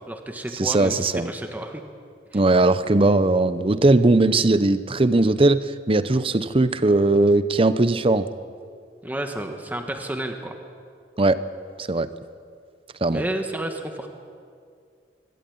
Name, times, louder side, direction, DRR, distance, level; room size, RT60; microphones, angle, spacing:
voice 1, 0.1-1.8 2.3-2.4 9.0-10.5 13.1-14.1, right 1 dB, 10° right, 4 dB, 1.4 m, -31 dB
voice 2, 0.6-1.3 2.3-8.3 11.2-11.4 11.8-12.1 13.0-13.2, right 2 dB, 30° right, 13 dB, 0.7 m, -19 dB
24.0 x 13.0 x 8.7 m, 2.2 s
head